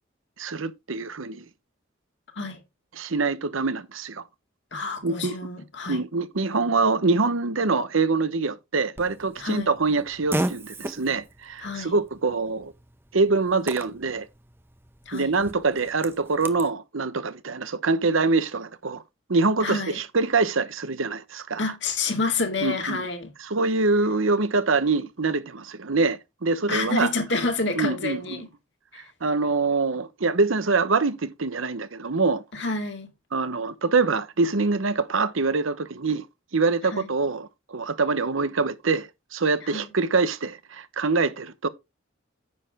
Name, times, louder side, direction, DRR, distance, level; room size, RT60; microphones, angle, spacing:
voice 1, 0.4-1.4 2.9-4.2 5.0-5.3 5.9-12.7 13.1-14.3 15.1-19.0 19.3-21.6 22.6-23.0 23.4-27.1 27.8-28.4 29.2-32.4 33.3-36.3 36.5-41.7, right 3 dB, 80° right, 0.9 m, -24 dB
voice 2, 4.7-6.0 9.4-9.7 11.6-11.9 15.1-15.3 19.6-20.0 21.6-23.3 26.7-28.5 28.9-29.1 32.5-33.1 36.8-37.1 39.6-39.9, left 3 dB, 60° left, 2.3 m, -29 dB
Fart, 9.0-16.7, right 1 dB, 10° right, 0.7 m, -36 dB
9.7 x 6.7 x 3.6 m
head